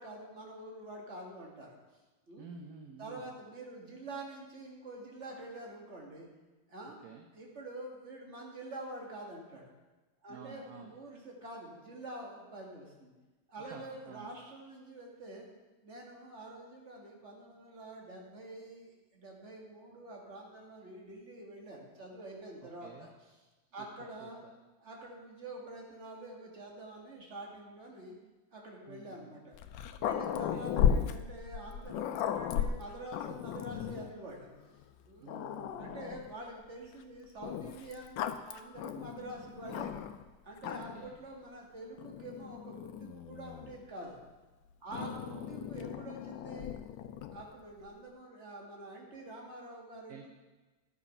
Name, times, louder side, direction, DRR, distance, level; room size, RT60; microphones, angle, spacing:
voice 1, 0.0-1.8 2.3-2.5 3.0-6.3 6.7-7.0 7.3-9.7 10.2-13.1 13.5-15.5 15.8-23.1 23.7-24.4 24.8-28.2 28.5-29.6 30.0-34.5 35.1-35.3 35.8-39.9 40.4-44.2 44.8-46.7 47.3-50.3, right 1 dB, 35° right, -1 dB, 2.1 m, -46 dB
voice 2, 2.4-3.3 7.0-7.2 10.3-11.0 13.6-14.3 22.6-23.1 23.8-23.9 24.2-24.3 28.9-29.3 30.3-30.7 35.2-36.0 40.7-41.2 44.9-45.5 50.1-50.3, right 5 dB, 60° right, 2 dB, 1.2 m, -50 dB
Growling, 29.5-34.1 34.8-34.9 35.3-36.3 37.4-40.2 40.6-41.1 42.0-43.8 44.9-47.5, left 8 dB, 85° left, 1.3 m, -35 dB
11.5 x 7.0 x 5.4 m, 1.2 s
omnidirectional pair, 2.0 m